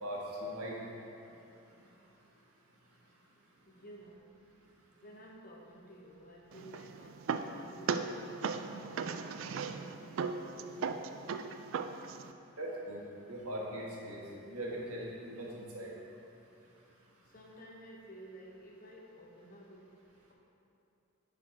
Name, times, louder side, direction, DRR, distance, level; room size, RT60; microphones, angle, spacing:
voice 1, 0.0-0.8 12.6-13.0 13.3-15.9, equal, 85° right, -4 dB, 1.4 m, -40 dB
voice 2, 3.7-4.3 5.0-11.3 17.2-20.0, equal, 40° left, -1 dB, 0.9 m, -54 dB
sound 1, 6.5-12.3, right 5 dB, 60° right, 0.3 m, -38 dB
10.5 x 4.1 x 4.2 m, 2.8 s
head